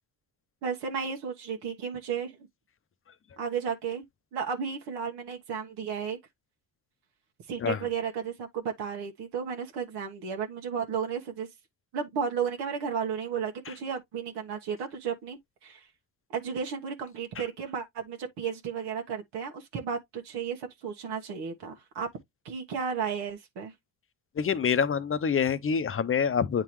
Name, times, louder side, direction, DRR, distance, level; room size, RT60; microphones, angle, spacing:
voice 1, 0.6-2.4 3.4-4.0 4.3-6.2 7.5-11.5 11.9-15.9 16.3-22.1 22.4-23.7, right 6 dB, 85° right, 1.4 m, -33 dB
voice 2, 24.4-26.6, left 6 dB, 35° left, 0.7 m, -26 dB
9.0 x 3.7 x 3.1 m
cardioid pair, 95°, 39 cm